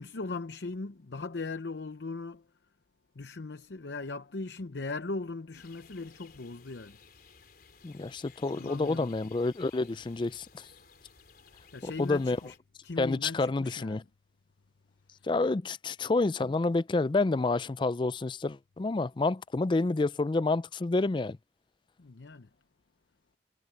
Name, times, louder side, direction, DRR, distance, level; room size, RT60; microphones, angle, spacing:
voice 1, 0.0-2.5 3.1-7.0 8.5-9.2 11.7-12.5 12.8-14.0 22.0-22.5, left 3 dB, 70° left, 0.8 m, -39 dB
sound 1, 5.5-12.6, left 6 dB, 55° left, 4.3 m, -57 dB
voice 2, 7.8-10.5 11.8-12.4 13.0-14.0 15.3-21.4, left 3 dB, 25° left, 0.4 m, -29 dB
head